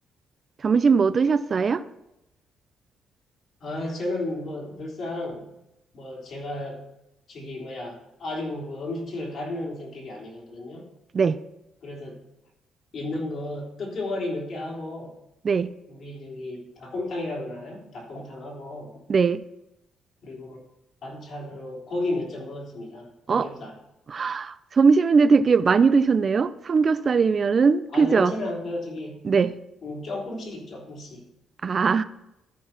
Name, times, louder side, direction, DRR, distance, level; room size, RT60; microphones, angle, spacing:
voice 1, 0.6-1.8 11.1-11.4 15.4-15.7 19.1-19.4 23.3-23.5 24.1-28.3 29.2-29.6 31.6-32.0, right 5 dB, 40° right, 13 dB, 0.5 m, -20 dB
voice 2, 3.6-5.5 5.9-6.8 7.3-10.9 11.8-12.2 12.9-15.2 15.9-19.0 20.2-20.6 21.0-23.7 27.9-29.3 29.8-31.3, left 2 dB, 60° left, -2 dB, 3.6 m, -33 dB
13.5 x 4.7 x 5.9 m, 0.88 s
cardioid pair, 90°, 0 cm